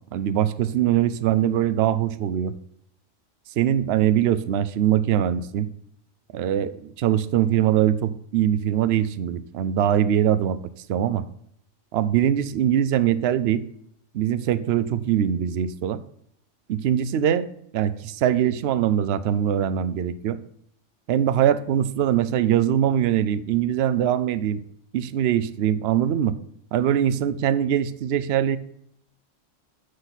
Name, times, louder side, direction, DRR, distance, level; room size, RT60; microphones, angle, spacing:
voice 1, 0.1-2.5 3.6-5.7 6.3-10.6 10.9-11.2 11.9-13.6 14.1-16.0 16.7-17.5 17.7-20.4 21.1-24.6 24.9-26.4 26.7-28.6, right 10 dB, 65° right, 14 dB, 0.8 m, -22 dB
9.7 x 6.4 x 4.0 m, 0.71 s
omnidirectional pair, 1.3 m